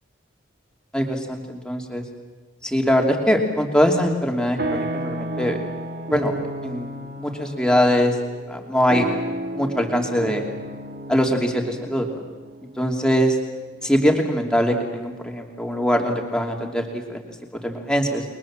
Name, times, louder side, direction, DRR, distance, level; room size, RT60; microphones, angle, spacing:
voice 1, 0.9-2.0 2.6-5.6 6.1-6.3 6.6-6.9 7.2-8.1 8.5-9.1 9.5-10.4 11.1-12.1 12.8-13.4 13.8-17.2 17.5-18.2, equal, 5° left, 2 dB, 2.9 m, -22 dB
sound 1, 3.2-3.8 4.1-14.1, right 1 dB, 55° right, 1.9 m, -32 dB
30.0 x 22.0 x 7.5 m, 1.2 s
head